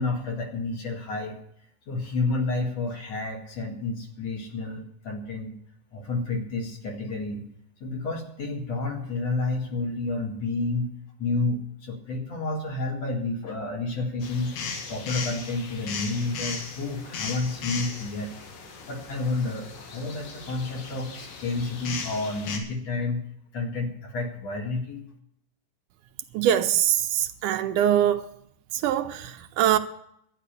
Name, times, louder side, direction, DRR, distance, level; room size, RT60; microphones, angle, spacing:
voice 1, 0.0-1.4 1.9-5.6 5.9-7.5 7.8-10.9 11.2-14.5 14.9-18.3 18.9-23.2 23.5-25.0, left 3 dB, 55° left, 3.0 m, -30 dB
sound 1, 14.2-22.6, left 5 dB, 80° left, 3.6 m, -37 dB
voice 2, 26.3-28.2 28.8-29.8, right 11 dB, 80° right, 2.2 m, -23 dB
12.5 x 10.0 x 6.7 m
omnidirectional pair, 3.8 m